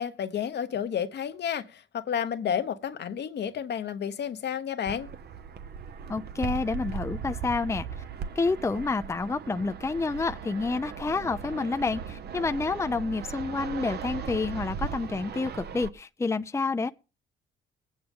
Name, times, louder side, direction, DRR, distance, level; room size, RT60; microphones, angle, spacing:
voice 1, 0.0-5.1, left 8 dB, 60° left, 1.1 m, -31 dB
Fixed-wing aircraft airplane, 4.9-15.9, right 7 dB, 55° right, 1.0 m, -38 dB
voice 2, 6.1-7.9 8.4-16.9, left 3 dB, 15° left, 0.5 m, -29 dB
20.5 x 8.8 x 3.7 m
cardioid pair, 90°, 20 cm